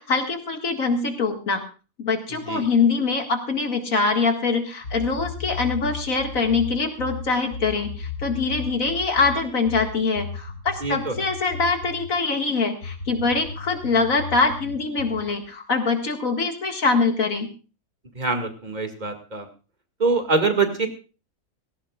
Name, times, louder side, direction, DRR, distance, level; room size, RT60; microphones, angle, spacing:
voice 1, 0.0-1.6 2.0-17.5, left 4 dB, 65° left, 4 dB, 2.4 m, -23 dB
sound 1, 4.8-12.1 12.8-15.3, left 5 dB, 85° left, 2.1 m, -35 dB
voice 2, 10.8-11.1 18.2-19.5 20.0-20.9, right 4 dB, 30° right, 5 dB, 2.3 m, -24 dB
18.5 x 17.5 x 2.5 m, 0.34 s
omnidirectional pair, 1.5 m